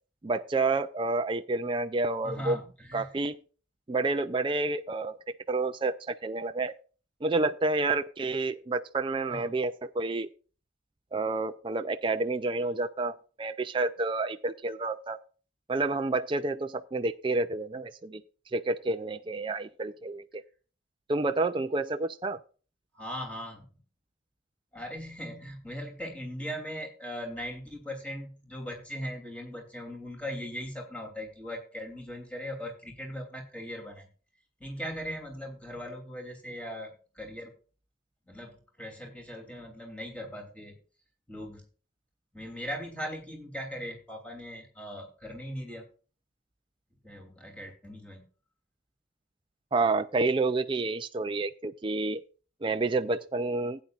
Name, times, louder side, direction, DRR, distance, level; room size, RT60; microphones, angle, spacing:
voice 1, 0.2-2.6 2.9-3.4 3.9-6.7 7.2-10.3 11.1-15.2 15.7-18.2 18.5-20.4 21.1-22.4 49.7-52.2 52.6-53.8, right 3 dB, 25° right, 8 dB, 0.4 m, -29 dB
voice 2, 2.2-3.1 9.3-9.5 22.9-23.7 24.7-34.1 34.6-37.5 38.3-40.8 41.3-41.7 42.3-45.9 47.0-48.3, equal, 5° left, 1 dB, 2.9 m, -39 dB
16.0 x 9.3 x 2.4 m, 0.37 s
head